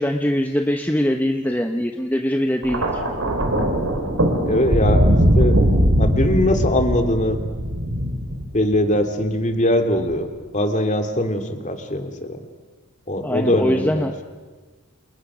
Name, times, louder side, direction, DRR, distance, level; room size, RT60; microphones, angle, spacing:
voice 1, 0.0-3.0 13.2-14.1, equal, 10° left, 4 dB, 1.0 m, -22 dB
Thunder, 2.6-9.0 10.0-10.2, equal, 70° right, 4.5 m, -20 dB
voice 2, 4.4-5.0 5.4-5.6 6.0-7.4 8.5-10.3 10.5-12.4 13.1-14.1, left 1 dB, 35° left, 6 dB, 2.7 m, -21 dB
29.5 x 28.5 x 6.3 m, 1.4 s
head